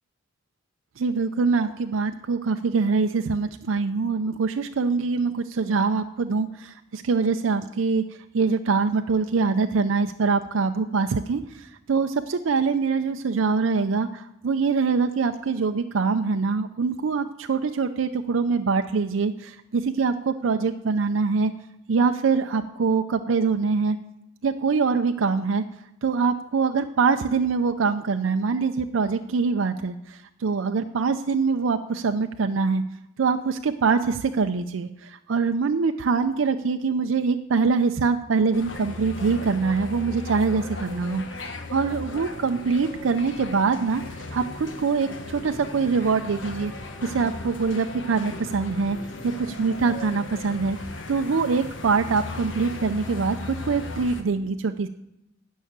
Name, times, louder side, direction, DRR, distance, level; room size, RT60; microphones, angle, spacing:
voice 1, 1.0-8.0 8.3-21.5 21.9-24.0 24.4-25.6 26.0-32.8 33.2-44.0 44.3-46.7 47.0-49.0 49.2-50.8 51.1-54.9, right 4 dB, 85° right, 7 dB, 0.5 m, -24 dB
sound 1, 38.5-54.2, left 2 dB, 70° left, 1.2 m, -37 dB
13.0 x 5.6 x 8.8 m, 0.86 s
head